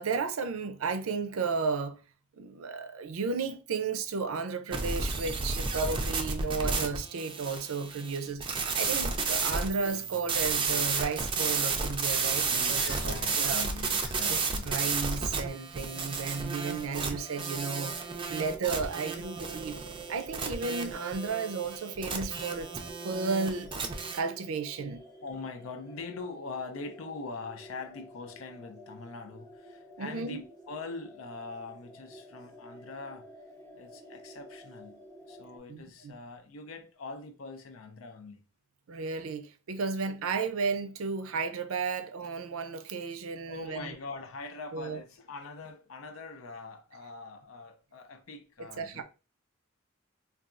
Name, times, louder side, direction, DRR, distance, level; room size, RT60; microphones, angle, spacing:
voice 1, 0.0-2.0 2.4-13.6 14.3-14.4 14.7-17.9 18.3-19.8 20.1-22.7 23.0-23.7 24.1-25.0 30.0-30.4 35.7-36.1 38.9-43.9 44.7-45.0 48.8-49.0, right 4 dB, 90° right, 0.5 m, -33 dB
sound 1, 4.7-24.2, right 4 dB, 25° right, 0.4 m, -32 dB
voice 2, 12.4-14.8 25.2-33.3 33.7-35.0 35.3-38.4 43.5-49.0, left 4 dB, 80° left, 0.5 m, -43 dB
sound 2, 15.9-35.6, right 2 dB, 15° left, 0.6 m, -50 dB
3.9 x 2.3 x 2.4 m
head